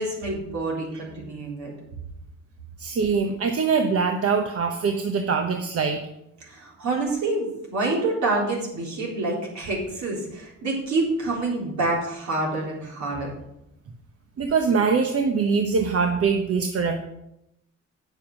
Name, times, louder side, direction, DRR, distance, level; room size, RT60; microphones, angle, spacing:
voice 1, 0.0-1.7 6.5-13.3, right 2 dB, 70° right, -2 dB, 4.0 m, -27 dB
voice 2, 2.8-6.0 14.4-17.0, right 5 dB, 50° right, 4 dB, 1.0 m, -23 dB
9.0 x 6.9 x 6.1 m, 0.84 s
cardioid pair, 90°, 30 cm